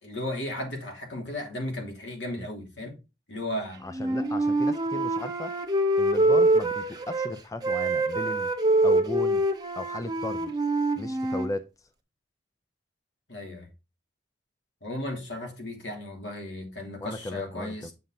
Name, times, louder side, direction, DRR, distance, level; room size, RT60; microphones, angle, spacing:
voice 1, 0.0-3.0 3.3-3.8 13.3-13.7 14.8-17.9, left 1 dB, 85° left, 2.8 m, -35 dB
voice 2, 3.8-5.6 6.0-8.5 8.8-9.4 9.8-10.5 11.0-11.7 17.0-17.9, left 1 dB, 20° left, 0.5 m, -36 dB
Wind instrument woodwind instrument, 3.9-7.3 7.6-11.5, right 2 dB, 25° right, 1.1 m, -25 dB
7.4 x 5.5 x 3.8 m
head